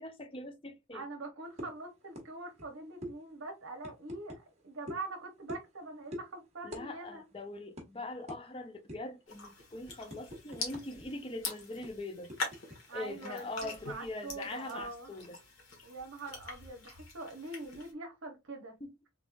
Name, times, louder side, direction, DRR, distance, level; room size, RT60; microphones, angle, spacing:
voice 1, 0.0-1.0 6.6-12.3 12.9-15.4 18.8-18.9, left 2 dB, 25° left, 0.5 m, -42 dB
voice 2, 0.9-7.2 12.9-15.1 15.8-18.7, right 2 dB, 70° right, 0.8 m, -44 dB
sound 1, 1.6-1.8 2.2-2.3 2.5-2.7 3.0-3.1 3.8-4.4 4.9-5.1 5.5-5.8 6.1-6.3 6.7-6.9 7.1-7.3 7.8-7.9 8.3-8.4 8.9-9.2 9.6-11.0 11.3-11.4 11.8-12.8, equal, 30° right, 1.2 m, -44 dB
sound 2, 9.3-17.9, left 3 dB, 80° left, 1.5 m, -44 dB
3.6 x 3.5 x 2.4 m
head